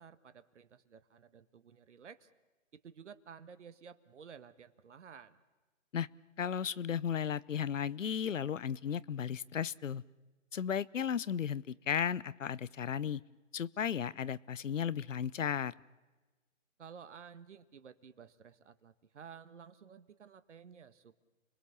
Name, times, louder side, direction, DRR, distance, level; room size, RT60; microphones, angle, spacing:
voice 1, 0.0-2.3 2.7-5.4 16.8-21.2, right 7 dB, 60° right, 12 dB, 1.5 m, -53 dB
voice 2, 6.4-10.0 10.5-13.2 13.5-15.7, left 8 dB, 70° left, 21 dB, 0.8 m, -35 dB
30.0 x 21.0 x 7.1 m, 1.2 s
hypercardioid pair, 150°, 39 cm